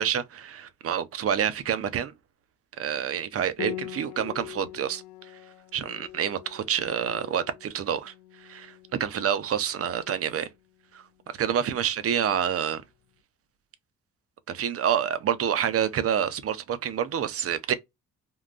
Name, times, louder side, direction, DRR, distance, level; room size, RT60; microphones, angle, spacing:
voice 1, 0.0-2.1 2.8-5.0 5.7-8.1 8.4-10.5 10.9-12.8 14.5-17.7, right 9 dB, 50° right, 0.6 m, -28 dB
Piano, 3.6-12.9, left 15 dB, 65° left, 0.5 m, -44 dB
3.7 x 2.2 x 2.4 m
cardioid pair, 90°, 30 cm